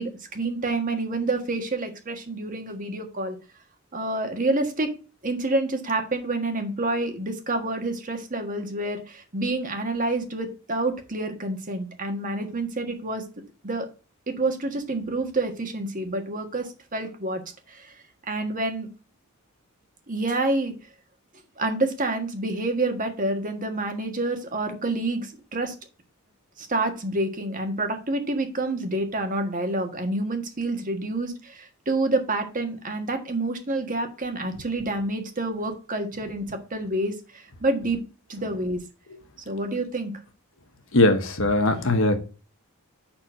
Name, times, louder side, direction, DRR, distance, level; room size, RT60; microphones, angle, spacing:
voice 1, 0.0-3.4 3.9-4.9 5.2-13.2 13.6-13.9 14.3-17.4 17.7-17.9 18.3-18.9 20.1-20.7 21.6-25.7 26.6-38.0 38.3-38.8 39.4-40.1, right 2 dB, 40° right, 5 dB, 1.5 m, -28 dB
voice 2, 40.9-42.2, left 2 dB, 65° left, 7 dB, 1.3 m, -20 dB
5.8 x 4.3 x 6.2 m, 0.34 s
head